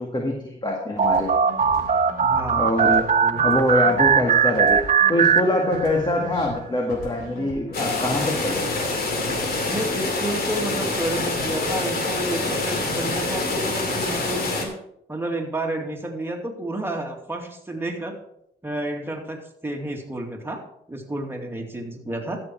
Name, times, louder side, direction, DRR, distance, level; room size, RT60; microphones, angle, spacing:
voice 1, 0.0-1.3 2.5-3.0 3.4-4.8 5.1-8.7, left 1 dB, 20° left, 0 dB, 2.0 m, -24 dB
sound 1, 1.0-5.4 5.7-8.1, left 1 dB, 85° left, 3.8 m, -40 dB
sound 2, 1.0-6.1, right 6 dB, 40° right, 0.8 m, -20 dB
voice 2, 2.2-3.5 9.7-14.7 15.1-18.2 18.6-20.6 20.9-22.4, right 1 dB, 10° right, 1 dB, 2.4 m, -30 dB
sound 3, 7.7-14.6, left 2 dB, 50° left, 2.7 m, -26 dB
13.5 x 7.1 x 4.6 m, 0.74 s
cardioid pair, 90°, 20 cm